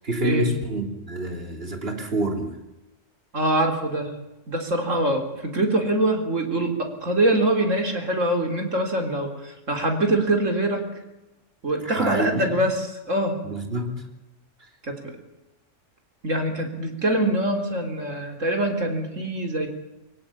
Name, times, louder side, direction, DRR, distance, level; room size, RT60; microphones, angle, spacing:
voice 1, 0.0-2.6 11.8-12.5 13.4-14.1, right 1 dB, 50° right, 4 dB, 3.5 m, -27 dB
voice 2, 3.3-4.1 4.5-10.8 11.6-13.4 14.8-15.2 16.2-19.7, right 1 dB, 80° right, 3 dB, 4.0 m, -24 dB
24.5 x 17.0 x 8.6 m, 0.98 s
omnidirectional pair, 1.3 m